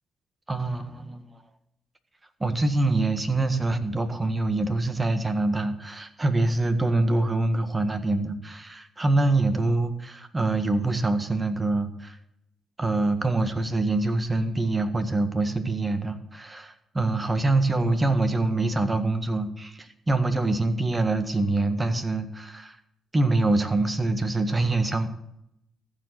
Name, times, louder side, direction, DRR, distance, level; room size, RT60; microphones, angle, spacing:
voice 1, 0.5-1.2 2.4-12.2 12.8-22.8 23.1-25.1, right 2 dB, 25° right, 9 dB, 1.7 m, -25 dB
14.5 x 4.9 x 8.1 m, 0.79 s
supercardioid pair, 65°, 0 cm